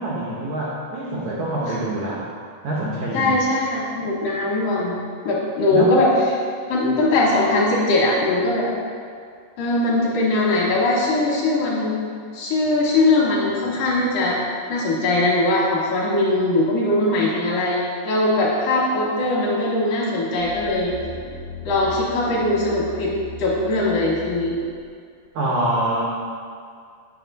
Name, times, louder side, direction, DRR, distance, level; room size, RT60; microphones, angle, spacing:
voice 1, 0.0-2.3 2.6-3.4 5.7-6.0 25.3-26.0, right 1 dB, 90° right, -4 dB, 1.6 m, -25 dB
voice 2, 3.1-5.0 5.3-6.1 6.7-8.7 9.6-12.0 12.3-14.4 14.7-20.9 21.7-23.1 23.4-24.6, left 2 dB, 70° left, -5 dB, 2.5 m, -20 dB
sound 1, 20.4-24.8 25.3-25.4, left 2 dB, 85° left, 2.0 m, -38 dB
9.3 x 5.8 x 3.9 m, 2.2 s
omnidirectional pair, 4.7 m